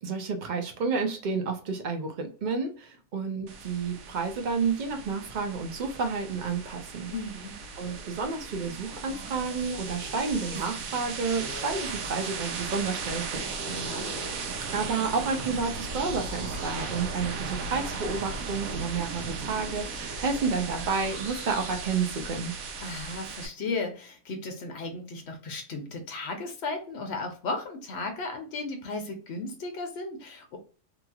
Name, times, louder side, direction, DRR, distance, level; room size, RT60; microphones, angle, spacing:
voice 1, 0.0-7.1 7.8-13.4 14.7-22.5, right 4 dB, 55° right, 4 dB, 0.5 m, -30 dB
sound 1, 3.5-23.5, right 4 dB, 90° right, 1.1 m, -37 dB
voice 2, 7.1-7.5 13.7-14.1 22.8-30.6, left 3 dB, 55° left, 5 dB, 1.0 m, -35 dB
sound 2, 9.1-23.1, equal, 35° right, 1.3 m, -46 dB
2.9 x 2.9 x 2.3 m, 0.38 s
omnidirectional pair, 1.4 m